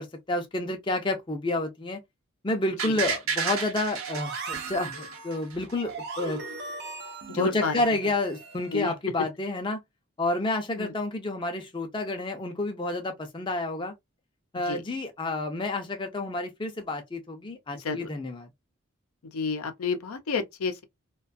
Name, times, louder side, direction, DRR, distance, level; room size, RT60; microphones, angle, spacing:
voice 1, 0.0-2.0 2.4-6.4 7.4-9.8 10.2-13.9 14.5-18.5, left 2 dB, 20° left, 0.5 m, -30 dB
sound 1, 2.8-5.7 6.1-6.2, right 6 dB, 75° right, 0.8 m, -31 dB
sound 2, 3.9-8.8, right 3 dB, 50° right, 0.5 m, -39 dB
voice 2, 7.3-7.7 8.7-8.9 10.8-10.9 14.7-14.8 17.7-18.1 19.2-20.8, left 4 dB, 85° left, 0.5 m, -30 dB
2.4 x 2.2 x 2.4 m
head